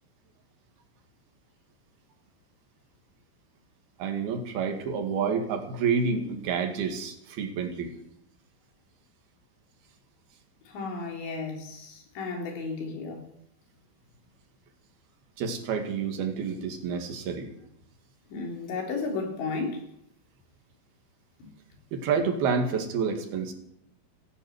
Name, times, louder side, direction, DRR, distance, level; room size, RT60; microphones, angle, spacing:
voice 1, 4.0-7.9 15.4-17.5 21.9-23.5, right 5 dB, 60° right, 3.6 m, -29 dB
voice 2, 10.7-13.2 18.3-19.8, left 4 dB, 65° left, 5.6 m, -33 dB
16.0 x 11.0 x 8.0 m
omnidirectional pair, 5.6 m